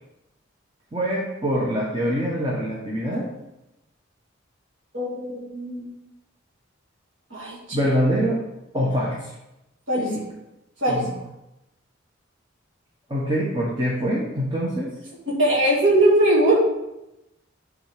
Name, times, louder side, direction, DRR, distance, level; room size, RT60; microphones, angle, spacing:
voice 1, 0.9-3.2 7.7-8.4 8.7-9.3 10.0-10.2 10.9-11.1 13.1-14.9, equal, 25° right, -4 dB, 1.2 m, -24 dB
voice 2, 4.9-5.8 7.3-7.8 9.9-10.2 10.8-11.0 15.4-16.6, right 1 dB, 70° right, -6 dB, 2.2 m, -20 dB
9.8 x 4.0 x 4.9 m, 0.92 s
head